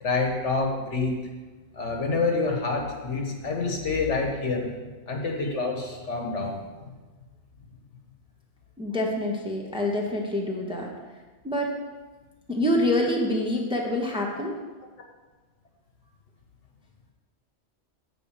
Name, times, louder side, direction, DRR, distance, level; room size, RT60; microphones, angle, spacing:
voice 1, 0.0-1.1 1.7-6.6, left 3 dB, 75° left, 1 dB, 1.6 m, -27 dB
voice 2, 8.8-10.9 11.4-11.7 12.5-14.6, left 1 dB, 5° right, -1 dB, 1.0 m, -26 dB
9.5 x 4.0 x 7.2 m, 1.3 s
omnidirectional pair, 1.2 m